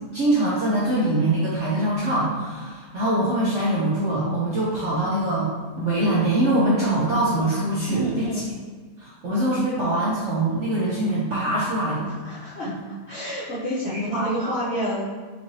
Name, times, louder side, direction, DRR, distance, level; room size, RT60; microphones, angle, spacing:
voice 1, 0.1-5.5 5.8-8.4 9.0-12.1 12.6-12.8 13.8-14.6, right 1 dB, 60° right, -7 dB, 0.7 m, -23 dB
voice 2, 7.9-8.5 12.2-12.7 13.1-15.0, equal, 55° left, -10 dB, 0.7 m, -29 dB
5.4 x 2.6 x 3.0 m, 1.5 s
omnidirectional pair, 2.1 m